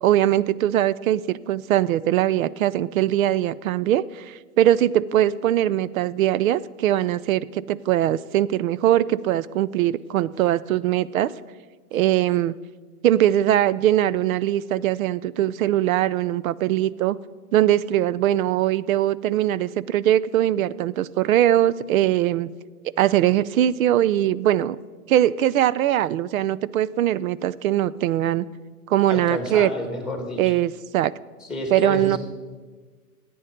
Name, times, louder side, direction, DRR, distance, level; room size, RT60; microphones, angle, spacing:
voice 1, 0.0-11.3 11.9-12.5 13.0-17.2 17.5-22.5 23.0-24.8 25.1-28.5 28.9-29.7 30.4-31.1 31.7-32.2, right 12 dB, 60° right, 20 dB, 0.6 m, -21 dB
voice 2, 29.1-30.5 31.4-32.2, left 1 dB, ahead, 3 dB, 2.2 m, -30 dB
13.5 x 9.5 x 5.2 m, 1.4 s
hypercardioid pair, 120°, 46 cm